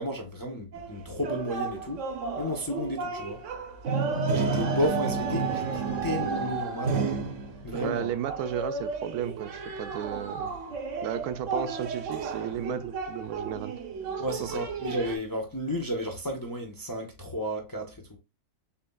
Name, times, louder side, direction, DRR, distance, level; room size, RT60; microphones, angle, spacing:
voice 1, 0.0-2.1 2.4-3.4 4.3-7.0 7.6-8.1 14.2-18.2, equal, 25° left, 0.5 m, -32 dB
sound 1, 0.7-15.2, right 4 dB, 60° right, 1.0 m, -32 dB
voice 2, 7.7-10.5 11.0-13.7 14.4-14.6, right 9 dB, 80° right, 1.1 m, -34 dB
6.9 x 2.7 x 2.2 m
omnidirectional pair, 1.6 m